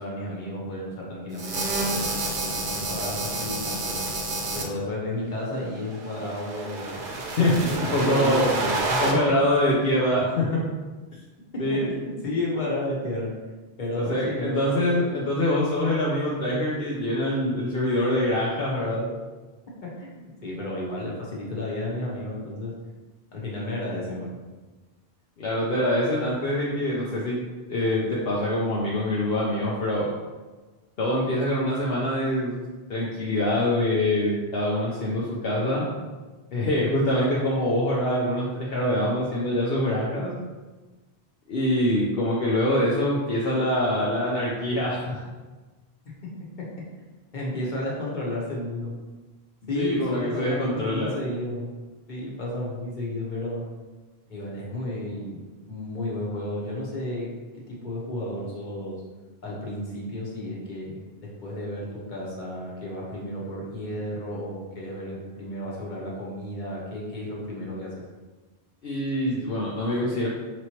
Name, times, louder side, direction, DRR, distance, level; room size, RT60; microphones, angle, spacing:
voice 1, 0.0-3.9 4.5-7.3 7.7-9.0 9.5-9.7 11.7-13.3 13.8-15.1 19.8-22.7 23.3-24.3 47.3-48.9 49.7-51.7 52.1-53.6 54.3-55.4 55.7-59.0 59.4-67.9, left 1 dB, 50° left, -4 dB, 1.2 m, -32 dB
sound 1, 1.3-4.7 5.8-9.1, right 2 dB, 60° right, 0.8 m, -29 dB
voice 2, 7.4-8.5 9.0-10.6 11.6-11.9 14.0-19.1 25.4-27.4 27.7-30.1 31.0-32.6 32.9-35.9 36.5-40.3 41.5-45.2 49.7-51.1 68.8-70.3, left 1 dB, 70° left, -5 dB, 0.9 m, -24 dB
5.1 x 3.0 x 2.9 m, 1.3 s
omnidirectional pair, 1.0 m